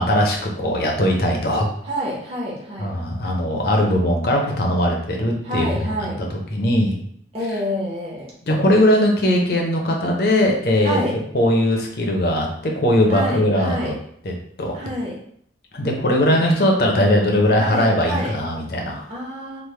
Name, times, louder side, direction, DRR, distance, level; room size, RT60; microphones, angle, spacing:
voice 1, 0.0-1.7 2.8-5.7 6.3-7.0 8.5-11.0 11.3-13.9 14.2-14.3 14.6-14.8 15.7-19.1, left 1 dB, 55° left, 0 dB, 0.6 m, -19 dB
voice 2, 1.8-2.9 5.4-6.2 7.3-8.3 10.8-11.2 13.1-14.0 14.7-15.2 17.5-18.3 19.1-19.6, equal, 35° right, -6 dB, 0.8 m, -27 dB
3.2 x 2.1 x 3.2 m, 0.66 s
head